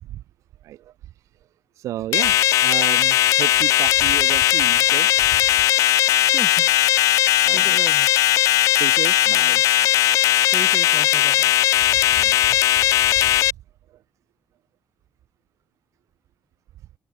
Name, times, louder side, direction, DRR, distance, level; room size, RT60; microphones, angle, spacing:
voice 1, 1.8-5.1 6.6-6.7 7.4-7.8 8.8-9.6 12.2-12.4 13.1-13.3, right 13 dB, 80° right, 6.4 m, -32 dB
sound 1, 2.1-13.5, left 14 dB, 90° left, 1.5 m, -18 dB
voice 2, 7.5-8.3 10.4-11.5, right 1 dB, 10° right, 5.0 m, -36 dB
open air
cardioid pair, 135°, 5 cm